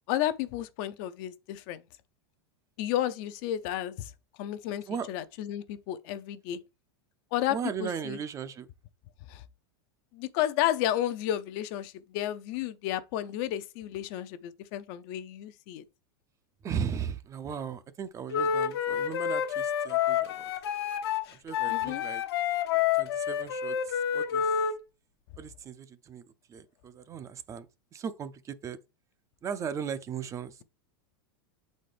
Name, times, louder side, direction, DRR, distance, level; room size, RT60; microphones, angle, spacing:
voice 1, 0.1-1.8 2.8-4.0 4.4-6.6 7.3-7.6 7.8-8.2 9.3-9.4 10.1-15.8 21.7-22.0, left 12 dB, 55° left, 0.6 m, -32 dB
voice 2, 7.5-8.7 16.6-20.5 21.3-22.2 22.9-24.5 25.4-28.8 29.4-30.6, right 7 dB, 25° right, 0.5 m, -37 dB
Wind instrument woodwind instrument, 18.3-24.8, left 8 dB, 75° left, 0.9 m, -29 dB
7.4 x 4.2 x 3.3 m
supercardioid pair, 125°, 13 cm